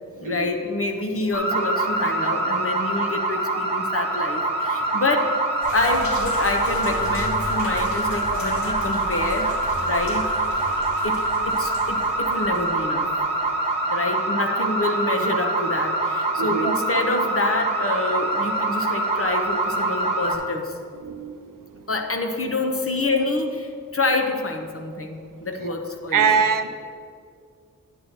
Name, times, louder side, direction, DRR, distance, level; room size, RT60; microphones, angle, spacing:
voice 1, 0.2-5.4 5.7-9.6 9.8-10.3 11.0-13.1 13.9-20.7 21.9-26.3, left 2 dB, 40° left, 4 dB, 0.9 m, -27 dB
sound 1, 1.3-20.3, right 2 dB, 20° right, 1.4 m, -25 dB
sound 2, 5.6-13.2, left 1 dB, 80° left, 2.3 m, -33 dB
voice 2, 16.4-16.7 21.0-21.4 26.1-26.7, right 6 dB, 70° right, 8 dB, 0.5 m, -22 dB
9.8 x 9.4 x 2.9 m, 2.3 s
wide cardioid pair, 65°, 34 cm